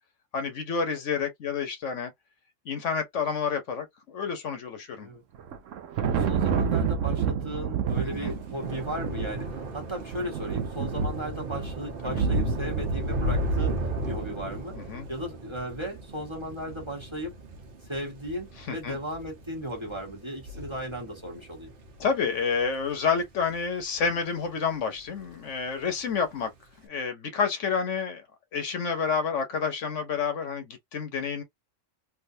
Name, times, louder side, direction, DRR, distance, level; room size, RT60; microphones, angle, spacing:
voice 1, 0.3-2.1 2.6-5.1 8.0-8.3 12.0-12.2 14.7-15.1 18.6-19.0 22.0-26.5 26.8-28.2 28.5-31.4, left 5 dB, 70° left, 1.1 m, -29 dB
Thunder, 5.3-14.8, right 6 dB, 70° right, 1.0 m, -30 dB
voice 2, 6.2-14.8 15.1-17.3 17.9-21.7, right 1 dB, 20° right, 1.2 m, -36 dB
Thunder / Rain, 8.0-24.6 24.9-25.4 25.6-25.8, right 1 dB, 45° right, 1.1 m, -35 dB
3.5 x 2.6 x 2.6 m
omnidirectional pair, 1.4 m